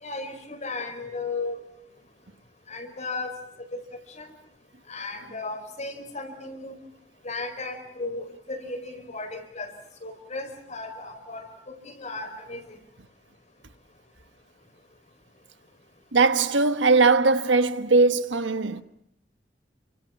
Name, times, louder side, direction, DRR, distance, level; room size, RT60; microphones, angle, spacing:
voice 1, 0.0-1.6 2.7-3.4 3.7-3.8 4.1-4.3 4.9-6.7 7.2-9.7 10.0-12.8, left 3 dB, 40° left, 4.8 m, -35 dB
voice 2, 16.1-18.8, right 3 dB, 75° right, 1.3 m, -20 dB
29.5 x 24.5 x 5.9 m
head